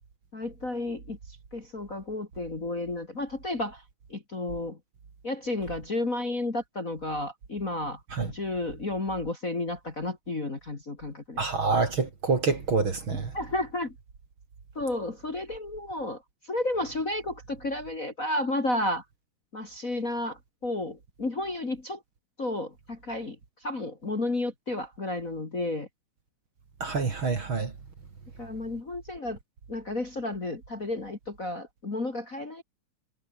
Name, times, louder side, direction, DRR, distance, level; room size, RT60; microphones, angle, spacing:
voice 1, 0.3-1.2 1.5-3.8 4.1-4.8 5.2-8.0 8.3-11.4 13.3-13.9 14.8-16.2 16.5-19.0 19.5-22.0 22.4-23.4 23.6-25.9 28.4-29.4 29.7-32.6, left 2 dB, 25° left, 2.5 m, -32 dB
voice 2, 11.4-13.3 26.8-27.7, right 4 dB, 40° right, 3.3 m, -26 dB
omnidirectional pair, 3.8 m